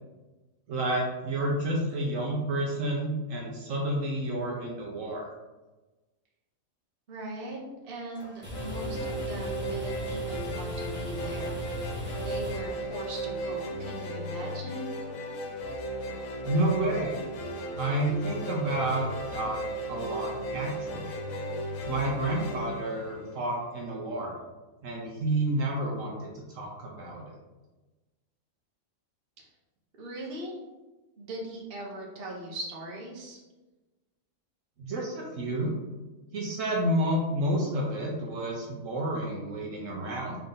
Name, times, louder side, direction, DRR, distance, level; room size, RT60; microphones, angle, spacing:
voice 1, 0.7-5.3 16.4-17.2 17.7-19.6 19.9-21.1 21.9-24.4 24.8-27.4 34.8-35.7 36.3-40.4, right 1 dB, 70° right, -1 dB, 1.1 m, -30 dB
voice 2, 7.1-15.0 29.4-29.5 30.0-30.6 31.2-33.4, right 1 dB, 45° right, -2 dB, 1.0 m, -40 dB
sound 1, 8.2-13.3, equal, 10° right, 1.2 m, -38 dB
sound 2, 8.5-23.8, right 1 dB, 80° left, 1.2 m, -35 dB
3.9 x 3.4 x 3.8 m, 1.1 s
omnidirectional pair, 1.4 m